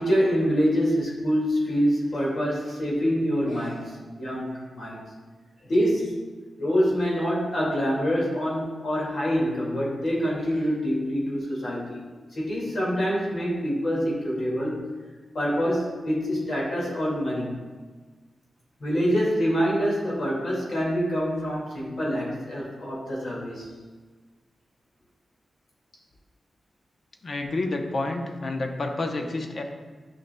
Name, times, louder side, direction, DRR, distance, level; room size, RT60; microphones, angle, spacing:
voice 1, 0.0-5.0 5.7-6.2 6.6-12.0 12.3-14.8 15.3-17.6 18.8-23.7, equal, 70° left, -5 dB, 2.0 m, -26 dB
voice 2, 27.2-29.6, left 2 dB, 55° left, 4 dB, 0.6 m, -29 dB
9.4 x 5.5 x 2.2 m, 1.4 s
wide cardioid pair, 100°, 0 cm